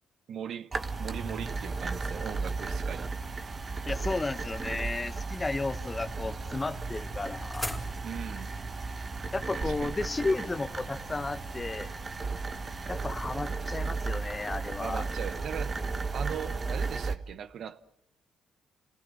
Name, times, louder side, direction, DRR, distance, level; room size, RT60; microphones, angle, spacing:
voice 1, 0.3-0.7 1.0-3.1 8.0-8.5 9.5-10.0 14.8-15.8 16.1-17.8, right 8 dB, 65° right, 1.1 m, -39 dB
old laptop, 0.7-17.2, right 4 dB, 35° right, 1.5 m, -35 dB
voice 2, 3.9-7.8 9.3-11.9 12.9-15.0, left 3 dB, 20° left, 1.3 m, -33 dB
sound 1, 7.1-11.1, equal, ahead, 4.1 m, -43 dB
30.0 x 19.5 x 7.8 m
cardioid pair, 90°, 0 cm